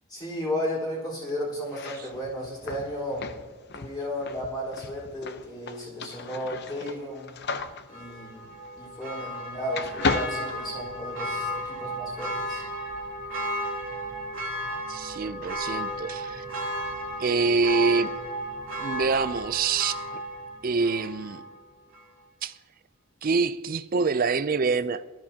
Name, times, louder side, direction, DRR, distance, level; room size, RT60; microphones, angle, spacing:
voice 1, 0.1-3.4 3.7-7.4 7.9-8.5 8.8-12.6, equal, 20° left, 4.3 m, -34 dB
sound 1, 1.6-9.4 9.7-11.3, left 4 dB, 50° left, 0.7 m, -35 dB
Church bell, 7.9-21.6 21.9-22.0, right 1 dB, 60° right, 1.9 m, -34 dB
voice 2, 14.9-16.4 17.2-18.1 18.8-20.2 20.6-21.4 22.4-22.6 23.2-25.0, right 4 dB, 40° right, 0.4 m, -26 dB
18.0 x 13.0 x 2.8 m
head